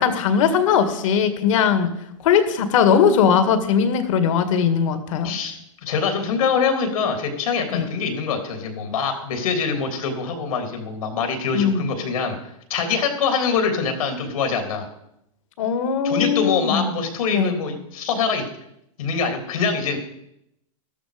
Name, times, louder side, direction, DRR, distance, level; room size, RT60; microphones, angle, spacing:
voice 1, 0.0-1.9 2.2-5.3 7.7-7.9 11.5-11.9 15.6-16.9 17.3-17.6, left 7 dB, 65° left, 9 dB, 2.0 m, -19 dB
voice 2, 5.2-5.6 5.8-12.4 12.7-14.9 16.0-18.4 19.0-20.0, left 5 dB, 80° left, 5 dB, 3.5 m, -24 dB
13.0 x 12.5 x 5.2 m, 0.79 s
supercardioid pair, 150°, 18 cm